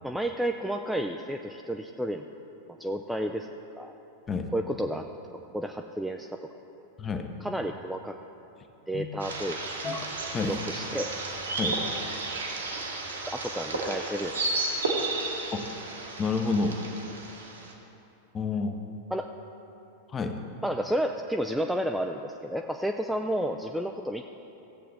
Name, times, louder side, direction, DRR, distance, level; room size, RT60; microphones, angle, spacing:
voice 1, 0.0-2.2 2.8-3.5 3.8-3.9 4.5-5.0 5.5-6.4 7.4-8.2 8.9-9.6 10.4-11.1 13.3-14.6 19.1-19.3 20.6-24.2, equal, ahead, 4 dB, 0.4 m, -31 dB
sound 1, 9.2-17.7, right 3 dB, 70° right, 1.4 m, -33 dB
voice 2, 16.2-16.8 18.3-18.8 20.1-20.4, left 4 dB, 20° left, 6 dB, 0.8 m, -29 dB
15.5 x 7.5 x 3.4 m, 2.9 s
figure-of-eight pair, 90°, 0 cm